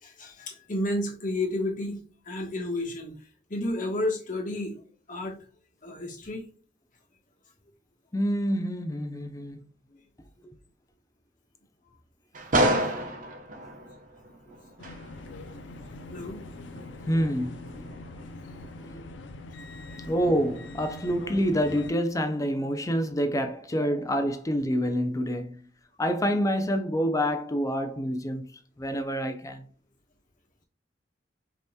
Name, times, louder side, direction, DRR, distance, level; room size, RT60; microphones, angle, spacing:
voice 1, 0.0-3.1 3.5-4.8 5.1-5.4 5.8-6.4 9.9-10.0 15.3-15.4 16.1-16.4 20.0-20.1, left 1 dB, 45° left, 1.2 m, -31 dB
voice 2, 8.1-9.7 13.0-13.1 17.1-17.9 18.8-19.0 20.1-25.6 26.0-28.4 28.8-29.7, equal, 20° left, 0.5 m, -27 dB
sound 1, 12.3-18.2 18.6-18.8, right 1 dB, 50° right, 0.8 m, -30 dB
sound 2, 14.8-21.9, left 2 dB, 90° left, 0.5 m, -43 dB
5.3 x 3.0 x 2.2 m
head